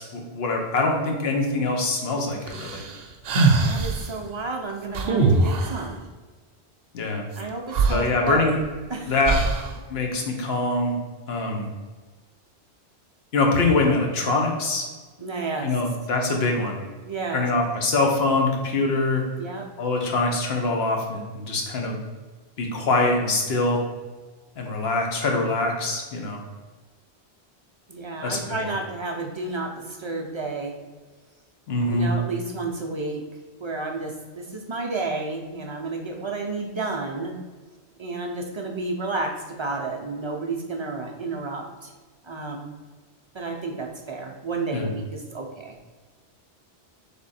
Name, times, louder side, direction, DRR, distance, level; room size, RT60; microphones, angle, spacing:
voice 1, 0.0-2.8 6.9-7.2 7.9-8.6 9.1-9.4 9.9-10.9 11.3-11.7 13.3-14.8 15.6-16.8 17.3-19.2 19.8-22.0 22.6-23.8 24.6-26.4 28.2-28.7 31.7-32.1 44.7-44.9, left 2 dB, 70° left, 1 dB, 1.0 m, -24 dB
sound 1, 2.5-4.1 4.9-5.9 7.4-7.5 7.7-8.7 9.2-9.8, right 3 dB, 65° right, 0.8 m, -22 dB
voice 2, 3.6-6.1 7.4-8.5 8.9-9.2 15.2-15.7 17.1-17.5 19.4-19.7 27.9-30.8 31.8-33.2 33.6-37.4 38.0-41.9 42.2-42.7 43.3-45.8, right 3 dB, 45° right, 1 dB, 0.3 m, -31 dB
3.5 x 3.4 x 4.1 m, 1.4 s
omnidirectional pair, 1.1 m